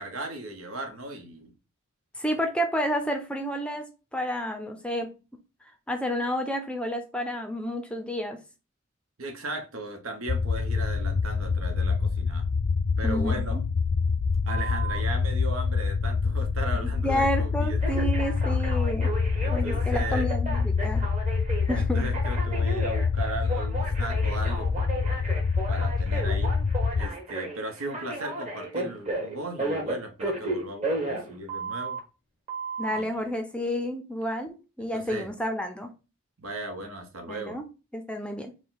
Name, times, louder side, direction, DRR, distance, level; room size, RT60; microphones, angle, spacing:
voice 1, 0.0-1.5 9.2-12.5 13.0-13.6 14.4-18.1 19.4-20.3 21.7-25.0 25.7-26.5 27.0-32.0 33.0-33.3 34.9-35.3 36.4-37.6, right 2 dB, 80° right, 1.0 m, -37 dB
voice 2, 2.2-5.1 5.9-8.4 13.0-13.6 16.7-19.1 19.5-21.0 21.7-22.1 32.8-35.9 37.3-37.7 37.9-38.5, equal, 5° left, 0.5 m, -30 dB
sound 1, 10.3-27.1, left 4 dB, 60° left, 0.4 m, -26 dB
Telephone, 14.5-15.0 17.8-32.0 32.5-33.0, right 2 dB, 30° right, 1.2 m, -34 dB
4.9 x 2.2 x 4.0 m
head